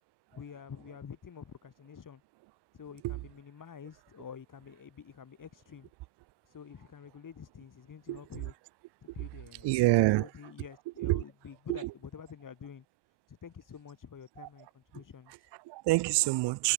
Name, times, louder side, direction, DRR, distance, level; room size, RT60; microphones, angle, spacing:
voice 1, 0.3-2.2 2.7-5.9 6.5-8.5 9.0-9.7 10.1-12.8 13.3-15.5, left 7 dB, 40° left, 4.6 m, -48 dB
voice 2, 9.6-10.5 11.0-11.2 11.7-11.9 14.4-14.5 15.6-16.7, right 20 dB, 60° right, 0.6 m, -27 dB
supercardioid pair, 75°, 48 cm